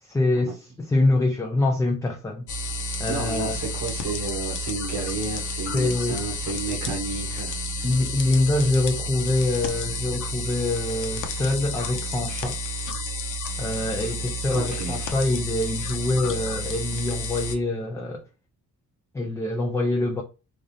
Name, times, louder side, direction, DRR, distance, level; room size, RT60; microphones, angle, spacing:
voice 1, 0.0-2.5 3.0-3.6 5.7-6.2 7.8-12.6 13.6-18.2 19.1-20.2, left 2 dB, 10° left, 0.3 m, -25 dB
sound 1, 2.5-17.6, left 1 dB, 70° left, 0.8 m, -31 dB
voice 2, 3.1-7.9 14.5-15.0, right 4 dB, 85° right, 1.5 m, -32 dB
3.8 x 2.6 x 3.2 m
wide cardioid pair, 165°, 32 cm